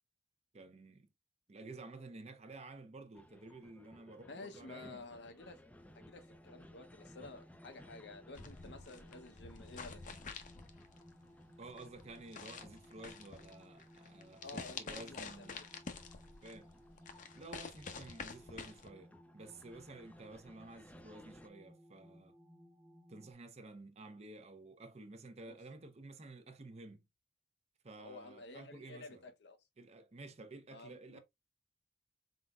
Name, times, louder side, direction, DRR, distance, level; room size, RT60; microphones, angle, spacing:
voice 1, 0.5-1.1 1.5-5.0 11.6-15.6 16.4-16.7 17.3-22.4 23.1-27.1 27.8-29.3 29.8-31.2, right 2 dB, 40° right, 0.7 m, -52 dB
sound 1, 3.1-21.5, left 1 dB, 10° left, 0.4 m, -62 dB
voice 2, 4.3-5.6 5.9-10.1 14.4-15.7 25.5-25.6 28.0-29.6 30.7-31.2, left 3 dB, 75° left, 0.8 m, -52 dB
sound 2, 5.7-23.3, equal, 15° right, 1.1 m, -61 dB
sound 3, 8.3-18.9, left 4 dB, 45° left, 0.7 m, -49 dB
4.2 x 3.9 x 2.3 m
head